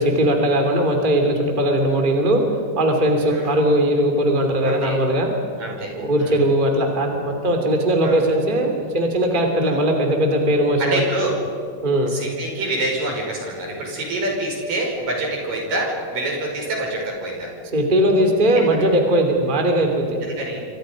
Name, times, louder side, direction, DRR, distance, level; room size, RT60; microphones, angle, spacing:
voice 1, 0.0-2.4 2.8-5.3 5.9-11.0 11.8-12.2 17.7-20.2, right 1 dB, 15° right, 3 dB, 2.7 m, -19 dB
voice 2, 4.6-5.0 5.6-5.9 6.2-6.4 8.0-8.2 9.6-9.8 10.8-11.3 12.1-17.5 18.7-18.9 20.2-20.6, right 1 dB, 70° right, -1 dB, 7.3 m, -26 dB
28.5 x 26.0 x 5.3 m, 2.3 s
omnidirectional pair, 4.0 m